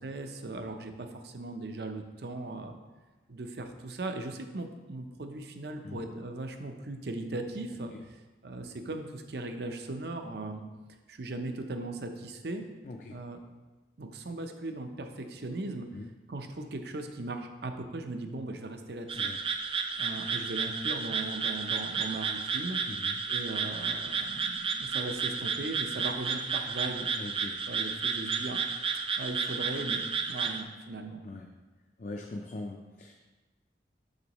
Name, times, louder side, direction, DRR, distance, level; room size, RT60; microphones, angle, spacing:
voice 1, 0.0-2.8 3.3-7.9 8.4-10.6 11.1-12.6 13.1-13.4 14.0-15.9 16.3-19.3 20.0-22.8 23.3-27.1 27.7-28.6 29.2-31.2, right 2 dB, 70° right, 6 dB, 0.6 m, -38 dB
voice 2, 12.8-13.1 15.9-16.1 19.1-19.4 22.9-23.2 27.2-27.6 31.2-31.5 32.0-33.1, left 2 dB, 45° left, 2 dB, 0.4 m, -41 dB
sound 1, 19.1-30.6, right 5 dB, 30° right, 0.4 m, -32 dB
6.8 x 6.7 x 3.0 m, 1.2 s
head